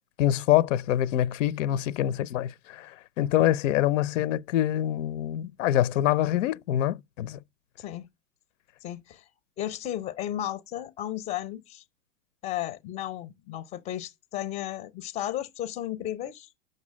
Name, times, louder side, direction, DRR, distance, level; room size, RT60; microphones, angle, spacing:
voice 1, 0.2-7.4, left 12 dB, 65° left, 0.6 m, -25 dB
voice 2, 7.8-8.1 8.8-9.2 9.6-11.8 12.4-16.5, left 12 dB, 15° left, 0.5 m, -34 dB
8.0 x 6.5 x 6.1 m
hypercardioid pair, 135°, 40 cm